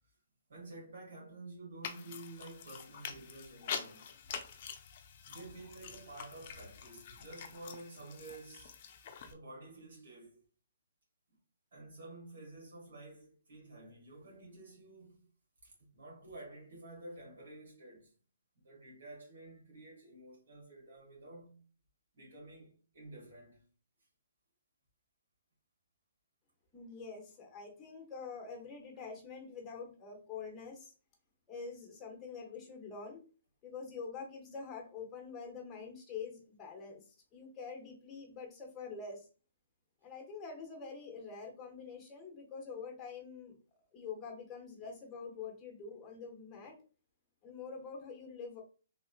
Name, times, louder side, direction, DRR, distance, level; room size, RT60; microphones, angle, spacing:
voice 1, 0.5-4.1 5.2-8.7 9.2-10.4 11.7-15.3 15.6-18.1 18.5-21.6 22.1-23.6, right 2 dB, 75° right, 1.6 m, -51 dB
sound 1, 1.8-9.3, left 7 dB, 40° left, 0.4 m, -46 dB
voice 2, 26.7-30.9 31.5-33.2 33.6-39.3 40.0-43.6 43.9-46.8 47.4-48.6, left 5 dB, 15° left, 0.8 m, -46 dB
3.2 x 2.7 x 2.4 m
hypercardioid pair, 160°, 0 cm